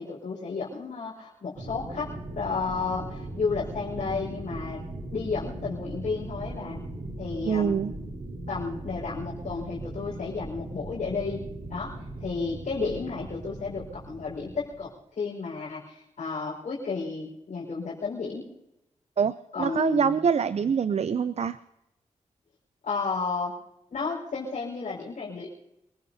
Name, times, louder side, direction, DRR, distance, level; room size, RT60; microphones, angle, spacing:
voice 1, 0.0-2.1 2.3-4.8 5.1-6.8 7.2-7.8 8.5-11.4 11.7-11.9 12.2-18.5 19.5-20.2 22.8-23.5 23.9-25.5, left 4 dB, 75° left, -6 dB, 5.0 m, -32 dB
sound 1, 1.6-14.9, right 1 dB, 80° right, 4.3 m, -39 dB
voice 2, 7.5-7.9 19.2-21.6, right 6 dB, 60° right, 14 dB, 0.5 m, -25 dB
26.5 x 16.5 x 2.8 m, 0.87 s
cardioid pair, 55°, 13 cm